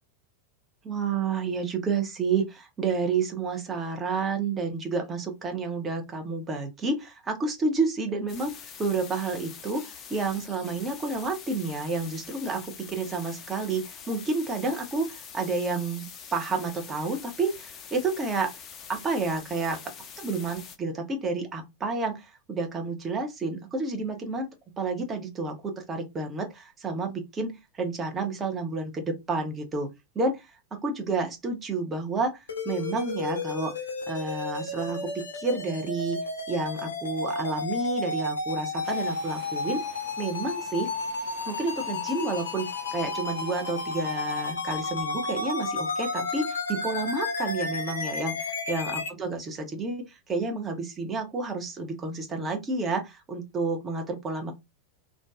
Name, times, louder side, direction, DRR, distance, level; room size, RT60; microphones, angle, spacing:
voice 1, 0.8-8.5 8.8-9.8 10.1-18.5 18.9-19.8 20.2-24.5 24.8-29.9 30.1-33.7 34.1-36.2 36.5-39.8 40.2-40.9 41.5-54.5, right 3 dB, 20° right, 0.7 m, -30 dB
sound 1, 8.3-20.8, left 7 dB, 30° left, 0.5 m, -45 dB
sound 2, 32.5-49.1, left 3 dB, 70° left, 0.6 m, -32 dB
sound 3, 38.8-44.5, right 6 dB, 55° right, 0.7 m, -50 dB
2.5 x 2.2 x 2.4 m
figure-of-eight pair, 90°, 0 cm